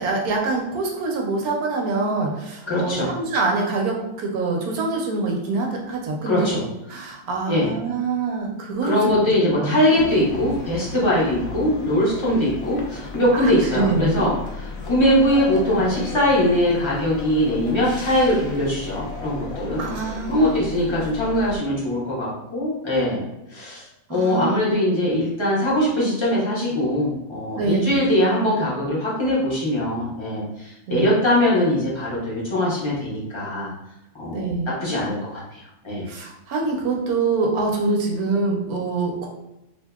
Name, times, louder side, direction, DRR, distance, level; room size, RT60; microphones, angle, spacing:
voice 1, 0.0-6.6 6.9-9.2 9.5-9.8 13.3-13.4 13.7-14.3 19.8-20.6 20.9-21.1 24.1-24.7 27.6-27.9 30.9-31.1 34.3-34.7 36.1-39.3, right 3 dB, 75° right, 0 dB, 1.0 m, -25 dB
voice 2, 2.7-3.1 6.3-6.6 7.5-7.7 8.8-19.8 20.3-23.2 23.5-33.7 34.1-34.4 34.8-36.0, left 1 dB, 40° left, -7 dB, 0.4 m, -21 dB
sound 1, 10.0-21.6, left 3 dB, 70° left, 0.9 m, -35 dB
2.7 x 2.6 x 2.2 m, 0.93 s
omnidirectional pair, 1.7 m